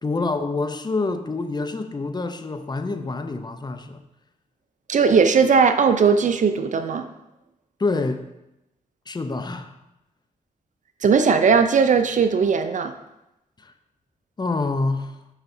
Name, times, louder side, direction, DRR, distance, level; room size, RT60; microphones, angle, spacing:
voice 1, 0.0-4.0 7.8-8.2 9.1-9.7 13.6-13.7 14.4-15.2, left 3 dB, 30° left, 8 dB, 0.7 m, -26 dB
voice 2, 4.9-7.1 11.0-12.9, right 5 dB, 55° right, 8 dB, 0.5 m, -18 dB
8.0 x 5.8 x 2.7 m, 0.90 s
cardioid pair, 65°, 15 cm